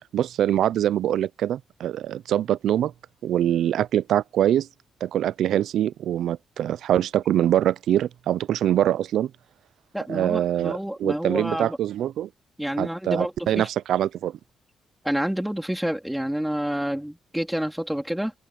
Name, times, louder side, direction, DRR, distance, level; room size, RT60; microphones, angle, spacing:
voice 1, 0.1-2.9 3.2-4.7 5.0-9.3 10.1-12.3 12.8-14.4, right 11 dB, 80° right, 0.4 m, -24 dB
voice 2, 9.9-11.8 12.6-13.7 15.0-18.3, equal, 5° right, 2.7 m, -28 dB
open air
wide cardioid pair, 165°, 0 cm